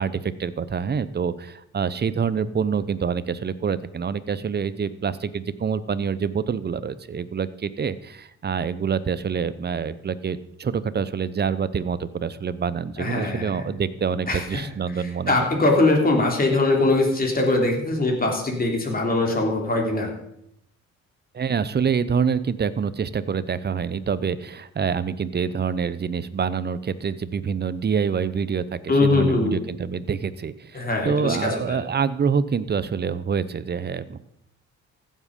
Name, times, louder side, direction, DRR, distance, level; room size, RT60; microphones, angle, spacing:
voice 1, 0.0-15.5 21.3-34.2, right 6 dB, 35° right, 15 dB, 0.8 m, -26 dB
voice 2, 13.0-13.7 14.3-14.6 15.3-20.1 28.9-29.6 30.7-31.8, left 2 dB, 30° left, 1 dB, 3.5 m, -22 dB
15.5 x 7.5 x 5.4 m, 0.76 s
cardioid pair, 90°, 30 cm